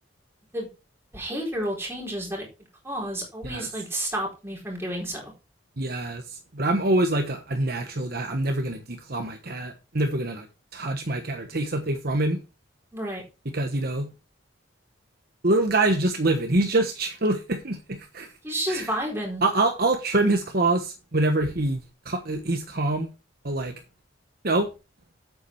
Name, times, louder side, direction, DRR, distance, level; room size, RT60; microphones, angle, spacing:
voice 1, 1.1-2.4 2.8-5.3 12.9-13.2 18.4-19.4, right 1 dB, 10° right, 4.2 m, -30 dB
voice 2, 5.8-10.5 10.7-12.4 13.5-14.1 15.4-18.3 18.7-18.9 19.4-23.1 23.4-23.7 24.4-24.7, right 2 dB, 50° right, 1.2 m, -25 dB
8.7 x 8.2 x 4.6 m
head